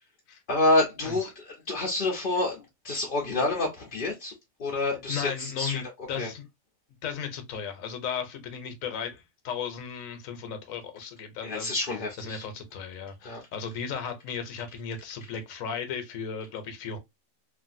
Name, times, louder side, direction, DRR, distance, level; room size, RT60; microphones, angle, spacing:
voice 1, 0.5-4.3 4.6-5.8 6.1-6.3 11.4-12.5 13.2-13.4, left 2 dB, 50° left, 0.7 m, -28 dB
voice 2, 5.1-5.8 6.1-6.4 7.0-11.7 12.2-17.0, left 7 dB, 75° left, 1.1 m, -35 dB
3.2 x 2.5 x 2.5 m
omnidirectional pair, 1.5 m